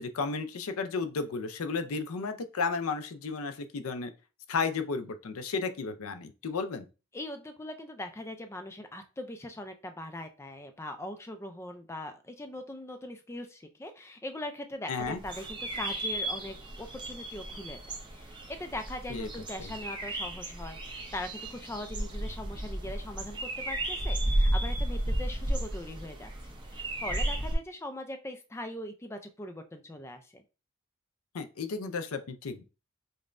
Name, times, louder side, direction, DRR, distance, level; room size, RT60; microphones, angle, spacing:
voice 1, 0.0-4.1 4.5-6.8 14.9-15.2 19.1-19.3 19.6-19.7 31.3-32.6, left 4 dB, 90° left, 10 dB, 0.5 m, -33 dB
voice 2, 7.1-17.8 18.1-30.4, left 1 dB, 10° left, 7 dB, 0.3 m, -41 dB
sound 1, 15.0-27.6, right 1 dB, 20° right, 0.6 m, -33 dB
5.1 x 2.1 x 2.5 m, 0.31 s
head